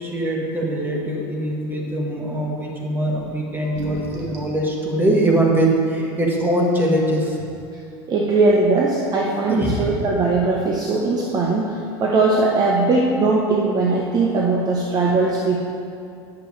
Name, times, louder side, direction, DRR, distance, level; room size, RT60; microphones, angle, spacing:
voice 1, 0.0-7.5 9.5-10.0, right 1 dB, 15° right, -1 dB, 1.4 m, -22 dB
sound 1, 3.6-4.6 5.7-5.8 6.3-6.4 6.6-7.1, right 1 dB, 65° right, 1.5 m, -33 dB
voice 2, 8.1-15.6, right 3 dB, 30° right, -2 dB, 0.8 m, -19 dB
10.5 x 6.7 x 3.2 m, 2.6 s
supercardioid pair, 120°, 13 cm